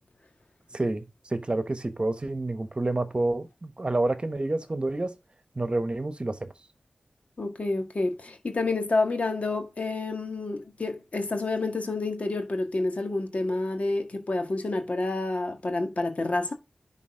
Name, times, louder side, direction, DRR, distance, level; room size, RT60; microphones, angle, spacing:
voice 1, 0.7-5.1 5.6-6.5, right 2 dB, 40° right, 1.1 m, -28 dB
voice 2, 7.4-16.5, left 2 dB, 55° left, 1.8 m, -29 dB
10.5 x 4.1 x 3.8 m
cardioid pair, 45°, 3 cm